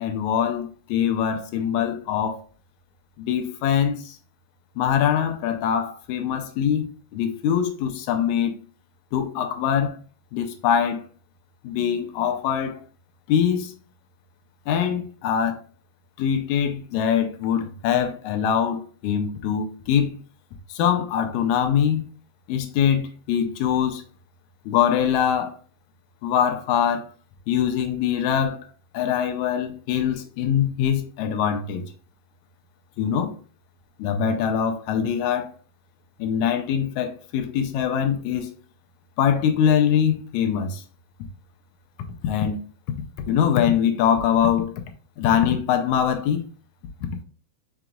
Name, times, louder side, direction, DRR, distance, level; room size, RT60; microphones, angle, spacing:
voice 1, 0.0-2.4 3.2-4.2 4.8-8.6 9.1-10.0 10.3-11.1 11.6-12.8 13.3-13.7 14.7-15.6 16.2-20.2 20.7-22.0 22.5-24.0 24.7-25.6 26.2-27.1 27.5-28.7 28.9-31.8 33.0-33.4 34.0-35.5 36.2-38.5 39.2-40.8 42.2-42.6 43.3-44.7 45.2-46.4 47.0-47.1, left 8 dB, 80° left, 1.9 m, -23 dB
5.8 x 3.9 x 2.3 m
omnidirectional pair, 3.4 m